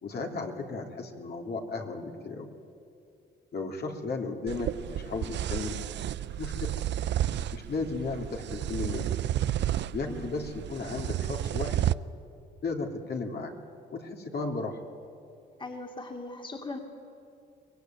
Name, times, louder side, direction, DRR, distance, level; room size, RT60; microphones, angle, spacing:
voice 1, 0.0-2.5 3.5-5.8 6.4-6.7 7.5-9.1 9.9-11.9 12.6-13.5 13.9-14.8, left 3 dB, 55° left, 2 dB, 3.3 m, -34 dB
sound 1, 4.5-11.9, right 12 dB, 65° right, 0.6 m, -31 dB
voice 2, 15.6-16.8, left 3 dB, 25° left, 2 dB, 2.6 m, -39 dB
24.5 x 20.5 x 9.4 m, 2.5 s
cardioid pair, 90°, 20 cm